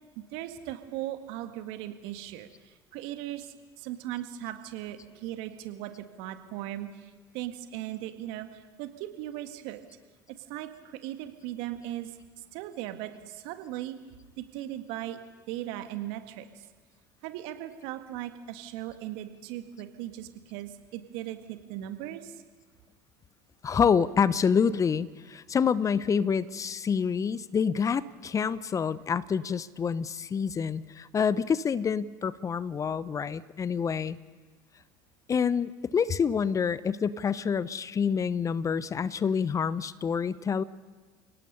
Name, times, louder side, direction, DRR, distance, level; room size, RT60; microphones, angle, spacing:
voice 1, 0.2-9.8 10.5-12.1 12.5-14.0 14.4-15.2 15.5-16.5 17.2-22.4, right 13 dB, 65° right, 8 dB, 1.8 m, -38 dB
voice 2, 23.6-34.2 35.3-40.6, left 6 dB, 30° left, 17 dB, 0.8 m, -27 dB
29.5 x 18.0 x 5.6 m, 1.4 s
hypercardioid pair, 65°, 10 cm